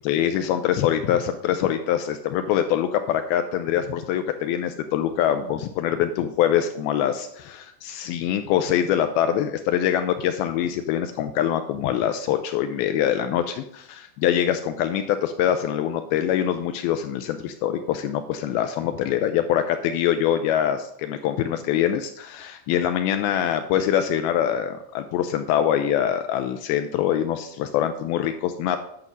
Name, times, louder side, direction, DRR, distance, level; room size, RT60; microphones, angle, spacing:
voice 1, 0.0-28.8, left 10 dB, 85° left, 8 dB, 2.3 m, -24 dB
11.0 x 6.0 x 5.2 m, 0.73 s
omnidirectional pair, 4.7 m